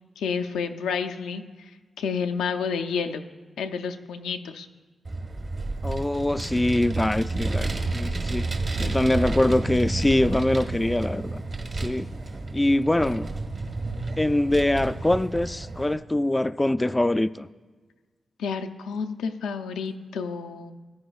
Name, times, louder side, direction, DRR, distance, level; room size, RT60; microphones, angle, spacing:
voice 1, 0.2-3.2 3.6-4.7 18.4-20.7, left 6 dB, 90° left, 6 dB, 0.5 m, -30 dB
Vehicle, 5.1-15.9, right 2 dB, 50° right, 1.3 m, -30 dB
voice 2, 5.8-8.4 8.8-11.4 11.8-12.1 12.5-13.3 14.2-17.5, left 1 dB, 20° left, 14 dB, 0.3 m, -23 dB
15.0 x 9.6 x 2.4 m, 1.4 s
supercardioid pair, 40°, 0 cm